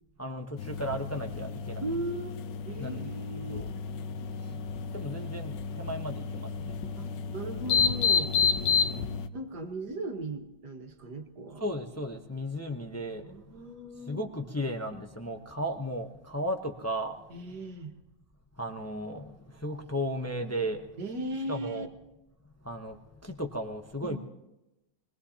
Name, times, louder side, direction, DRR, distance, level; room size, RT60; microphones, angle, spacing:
voice 1, 0.2-1.8 2.8-3.7 4.9-6.8 8.8-9.0 11.6-13.2 14.1-17.1 18.6-19.3 19.6-20.8 21.5-21.9 22.6-23.0 23.2-24.2, equal, 15° left, 4 dB, 0.5 m, -35 dB
sound 1, 0.6-9.3, left 6 dB, 70° left, 1.3 m, -31 dB
voice 2, 1.8-2.3 2.6-3.6 7.0-8.9 9.3-11.6 13.2-14.2 17.3-18.0 21.0-21.9 24.0-24.2, right 1 dB, 60° right, 4 dB, 2.0 m, -38 dB
24.0 x 19.5 x 2.9 m, 0.95 s
omnidirectional pair, 2.0 m